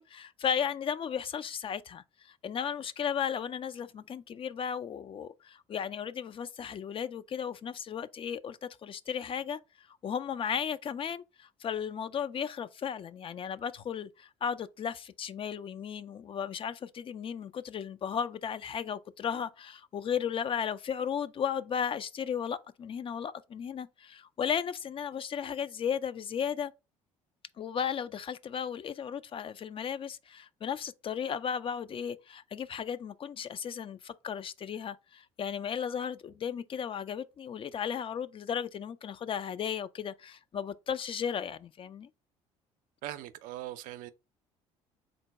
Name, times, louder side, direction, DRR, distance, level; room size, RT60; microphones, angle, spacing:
voice 1, 0.0-9.6 10.0-26.7 27.6-42.1, left 8 dB, 40° left, 0.4 m, -35 dB
voice 2, 43.0-44.1, right 14 dB, 75° right, 0.4 m, -40 dB
3.9 x 2.2 x 4.5 m
supercardioid pair, 70°, 14 cm